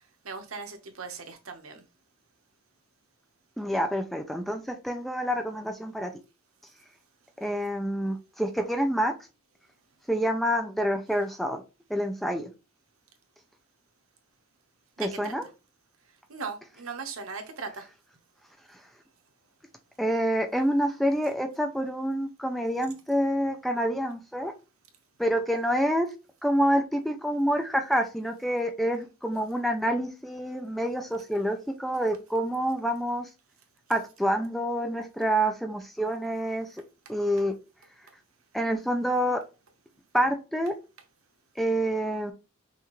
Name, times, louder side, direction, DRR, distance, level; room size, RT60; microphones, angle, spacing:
voice 1, 0.2-1.8 15.0-15.3 16.3-17.9, right 5 dB, 90° right, 1.1 m, -38 dB
voice 2, 3.6-6.1 7.4-9.1 10.1-11.6 11.9-12.5 15.0-15.5 20.0-24.5 25.2-26.1 26.4-33.3 33.9-36.7 37.1-37.5 38.5-39.4 40.1-40.8 41.6-42.3, equal, ahead, 0.5 m, -27 dB
5.7 x 2.7 x 3.1 m
head